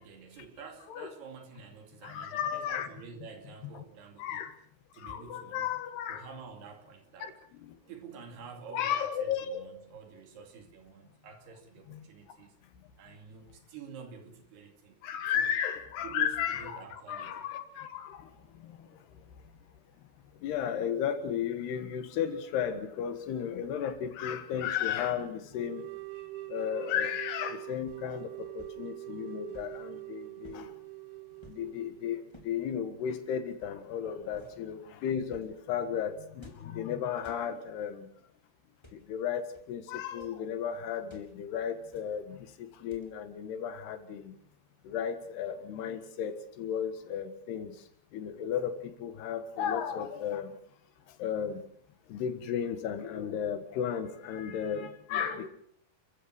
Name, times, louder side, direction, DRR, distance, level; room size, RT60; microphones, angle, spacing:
voice 1, 0.0-4.4 4.9-5.7 6.1-7.3 7.9-12.6 13.0-15.5 16.0-17.5 34.3-34.5, right 6 dB, 80° right, 4 dB, 4.5 m, -48 dB
voice 2, 2.0-2.9 3.6-3.8 4.2-4.6 5.0-6.3 7.2-7.8 8.7-9.6 11.9-12.1 15.0-19.0 20.4-25.9 26.5-30.7 31.5-38.1 38.9-44.4 44.8-47.9 48.1-50.6 51.1-51.6 52.1-55.5, left 8 dB, 80° left, 9 dB, 3.7 m, -34 dB
sound 1, 25.5-32.3, right 20 dB, 60° right, 2.4 m, -43 dB
sound 2, 25.9-26.3 27.9-28.1 28.6-28.8 29.5-29.9 30.4-30.7 31.4-31.7 32.3-32.6 33.5-33.9 34.3-34.6 35.2-35.6 36.4-36.8 37.2-37.5 38.7-39.1 39.5-39.7 40.0-40.4 41.1-41.3 41.9-42.2 42.9-43.2, equal, 5° left, 3.6 m, -56 dB
30.0 x 15.5 x 6.4 m, 0.63 s
omnidirectional pair, 4.6 m